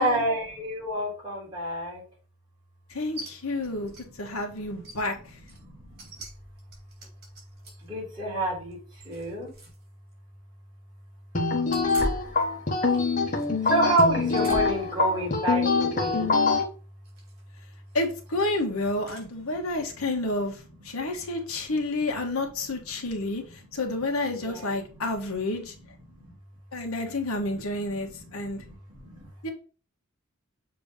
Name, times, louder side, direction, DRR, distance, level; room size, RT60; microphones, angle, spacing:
voice 1, 0.0-2.0 3.7-4.9 5.6-6.1 7.8-8.8 9.0-9.5 13.6-16.3 19.4-19.6 21.0-21.1 21.7-21.8 22.9-23.1 23.4-23.5 24.0-25.0 25.6-26.3 27.4-29.3, right 1 dB, 20° right, -5 dB, 3.8 m, -30 dB
voice 2, 2.9-3.9 4.2-5.1 17.9-23.4 23.7-25.7 26.7-28.6 29.4-29.5, left 2 dB, 85° left, 3 dB, 1.3 m, -30 dB
sound 1, 3.2-3.3 3.6-4.0 4.3-4.4 4.8-7.9 8.5-9.8 10.1-10.2 11.6-13.0 13.4-14.9 15.4-15.7 17.0-17.4 17.9-18.3 19.1-19.2, equal, 45° right, 3.3 m, -40 dB
sound 2, 11.3-16.6, left 4 dB, 35° left, 1.2 m, -24 dB
6.9 x 3.1 x 5.2 m, 0.37 s
head